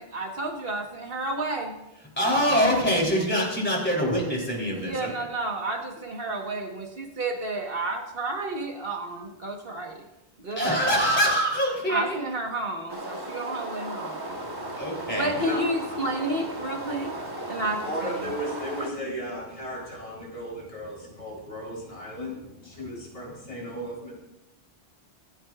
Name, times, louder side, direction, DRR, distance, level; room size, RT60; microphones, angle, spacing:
voice 1, 0.0-1.7 4.8-10.0 10.4-10.8 11.9-14.4 15.1-17.1 17.5-18.2, right 2 dB, 55° right, 2 dB, 1.6 m, -31 dB
voice 2, 2.2-5.1 10.5-12.2 14.7-15.3, equal, 10° left, -2 dB, 3.4 m, -24 dB
sound 1, 12.9-18.9, right 1 dB, 20° right, 1.3 m, -36 dB
voice 3, 14.3-15.6 16.6-24.1, equal, 85° left, -4 dB, 4.3 m, -36 dB
25.0 x 8.9 x 2.5 m, 0.92 s
omnidirectional pair, 1.1 m